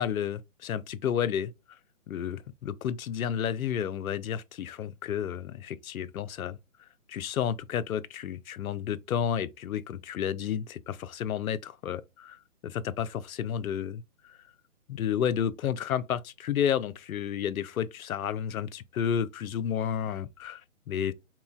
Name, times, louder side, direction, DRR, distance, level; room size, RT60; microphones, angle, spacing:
voice 1, 0.0-1.5 2.1-6.6 7.1-12.4 12.6-14.4 14.9-20.6 20.9-21.1, left 9 dB, 80° left, 0.5 m, -31 dB
3.8 x 3.0 x 2.3 m
hypercardioid pair, 160°, 42 cm